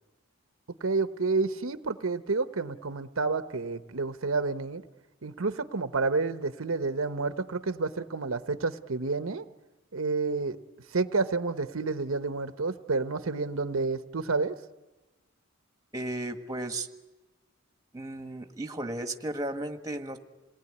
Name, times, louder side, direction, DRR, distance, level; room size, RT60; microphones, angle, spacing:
voice 1, 0.8-4.8 5.2-9.4 9.9-10.6 10.9-14.6, right 3 dB, 75° right, 10 dB, 1.0 m, -29 dB
voice 2, 15.9-16.9 17.9-20.2, right 1 dB, 15° right, 6 dB, 1.6 m, -34 dB
27.5 x 19.5 x 9.7 m, 1.1 s
head